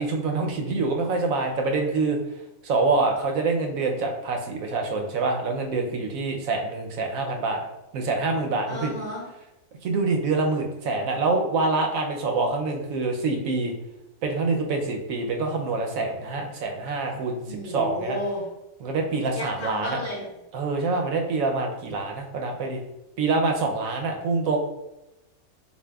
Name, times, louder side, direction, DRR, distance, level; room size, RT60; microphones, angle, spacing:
voice 1, 0.0-2.2 2.6-7.7 7.9-8.9 9.8-13.7 14.2-18.2 18.8-20.0 20.5-22.8 23.2-24.6, right 3 dB, 70° right, 3 dB, 1.0 m, -26 dB
voice 2, 8.7-9.2 17.5-18.4 19.3-20.2, equal, 50° left, -7 dB, 1.6 m, -32 dB
6.9 x 2.4 x 2.3 m, 0.96 s
omnidirectional pair, 1.5 m